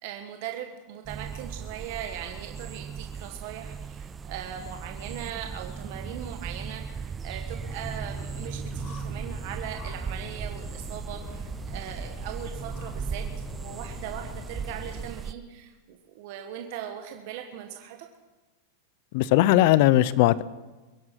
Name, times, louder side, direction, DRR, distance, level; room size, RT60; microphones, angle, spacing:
voice 1, 0.0-13.2 13.5-18.0, right 10 dB, 55° right, 4 dB, 1.3 m, -39 dB
sound 1, 1.1-15.3, right 6 dB, 20° right, 0.4 m, -37 dB
sound 2, 7.6-15.1, left 8 dB, 30° left, 1.0 m, -44 dB
voice 2, 19.1-20.4, left 15 dB, 55° left, 19 dB, 0.6 m, -19 dB
23.0 x 7.9 x 5.9 m, 1.2 s
supercardioid pair, 140°, 0 cm